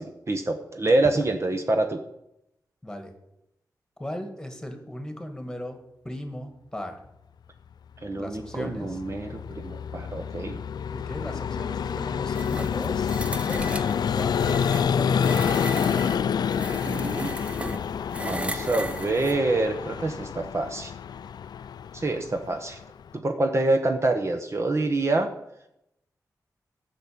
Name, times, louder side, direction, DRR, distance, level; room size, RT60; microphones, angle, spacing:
voice 1, 0.0-2.0 8.0-10.6 16.8-17.3 18.2-20.9 21.9-22.8 23.1-25.3, right 2 dB, 40° right, 5 dB, 1.1 m, -26 dB
voice 2, 2.8-3.1 4.0-5.8 6.0-7.0 8.2-9.0 10.9-15.7, left 1 dB, 10° left, 5 dB, 2.0 m, -38 dB
Vehicle, 8.4-23.1, left 7 dB, 85° left, 0.3 m, -28 dB
sound 1, 12.3-19.4, right 1 dB, 15° right, 0.8 m, -36 dB
12.0 x 6.1 x 8.6 m, 0.83 s
wide cardioid pair, 80°, 7 cm